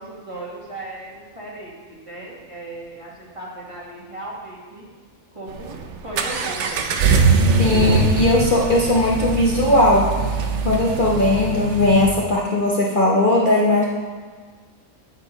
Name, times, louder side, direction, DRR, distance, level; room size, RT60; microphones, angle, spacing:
voice 1, 0.0-4.8 5.3-6.8, right 2 dB, 25° right, -5 dB, 1.6 m, -37 dB
Accelerating revving vroom, 5.5-12.1, right 4 dB, 65° right, 0.9 m, -22 dB
voice 2, 7.6-10.4 10.6-13.8, left 1 dB, 40° left, -5 dB, 1.0 m, -18 dB
8.4 x 7.9 x 3.1 m, 1.5 s
omnidirectional pair, 1.4 m